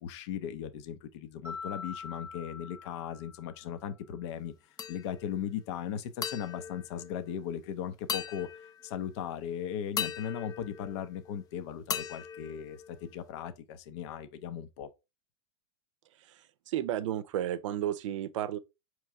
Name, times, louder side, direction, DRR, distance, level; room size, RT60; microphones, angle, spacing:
voice 1, 0.0-4.5 4.9-14.9, left 9 dB, 60° left, 0.7 m, -38 dB
Mallet percussion, 1.4-3.8, left 5 dB, 15° right, 0.7 m, -44 dB
sound 1, 4.8-5.4 6.2-7.6 8.1-9.1 10.0-11.4 11.9-13.3, left 8 dB, 25° left, 0.4 m, -39 dB
voice 2, 16.2-18.6, right 11 dB, 75° right, 0.5 m, -33 dB
4.6 x 3.1 x 3.4 m
supercardioid pair, 135°, 16 cm